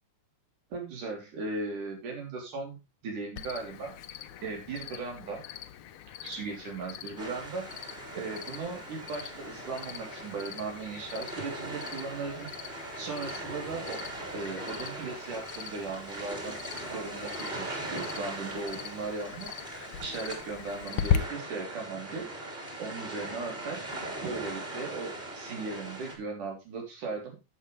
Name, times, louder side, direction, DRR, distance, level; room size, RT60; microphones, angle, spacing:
voice 1, 0.7-2.8 3.0-3.9 4.4-5.4 6.2-14.0 14.3-16.6 16.9-23.8 24.2-27.5, right 4 dB, 85° right, 1 dB, 4.9 m, -38 dB
Cricket, 3.4-21.2, left 10 dB, 80° left, 1.2 m, -39 dB
sound 1, 7.2-26.2, right 2 dB, 15° right, 3.0 m, -40 dB
12.0 x 7.9 x 3.3 m, 0.26 s
omnidirectional pair, 3.5 m